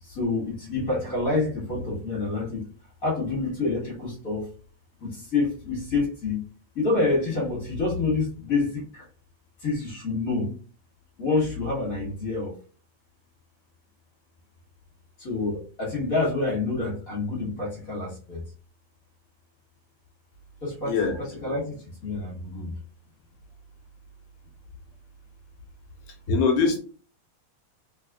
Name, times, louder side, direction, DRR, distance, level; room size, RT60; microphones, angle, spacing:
voice 1, 0.0-2.7 3.0-4.5 5.0-6.4 6.7-9.1 9.6-10.6 11.2-12.5 15.2-18.4 20.6-22.7, left 3 dB, 40° left, -5 dB, 1.3 m, -27 dB
voice 2, 20.9-21.2 26.3-26.8, left 5 dB, 80° left, 4 dB, 1.9 m, -22 dB
4.1 x 3.2 x 2.3 m, 0.39 s
omnidirectional pair, 3.3 m